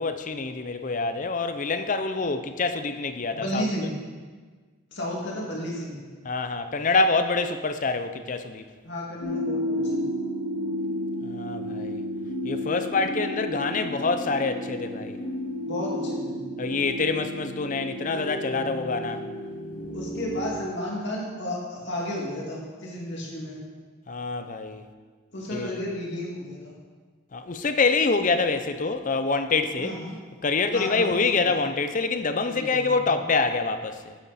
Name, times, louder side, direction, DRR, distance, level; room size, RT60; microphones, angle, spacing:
voice 1, 0.0-3.7 6.2-8.6 11.2-12.0 12.4-15.2 16.6-19.2 24.1-24.8 25.5-25.8 27.3-30.0 30.4-34.2, left 4 dB, 35° left, 9 dB, 0.5 m, -26 dB
voice 2, 3.3-3.9 4.9-6.0 8.8-10.1 15.7-16.3 19.9-23.6 25.3-26.7 29.8-30.2 30.7-31.6 32.5-33.2, left 1 dB, 55° left, -4 dB, 2.4 m, -33 dB
sound 1, 9.2-20.5, left 1 dB, 85° left, 2.4 m, -32 dB
9.1 x 8.9 x 4.2 m, 1.5 s
head